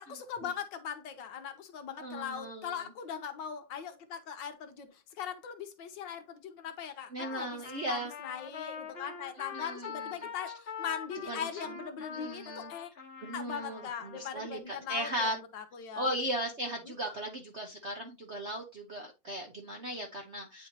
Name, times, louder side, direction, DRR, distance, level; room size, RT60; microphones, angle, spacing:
voice 1, 0.0-12.9 13.3-16.1 16.8-17.2, left 8 dB, 65° left, 1.3 m, -40 dB
voice 2, 2.0-2.8 7.1-8.1 9.3-10.3 11.3-11.5 12.1-12.7 13.2-15.4 16.0-20.7, equal, 50° right, 0.8 m, -37 dB
Trumpet, 7.2-14.3, left 6 dB, 35° left, 1.1 m, -44 dB
9.0 x 4.3 x 2.7 m
omnidirectional pair, 2.3 m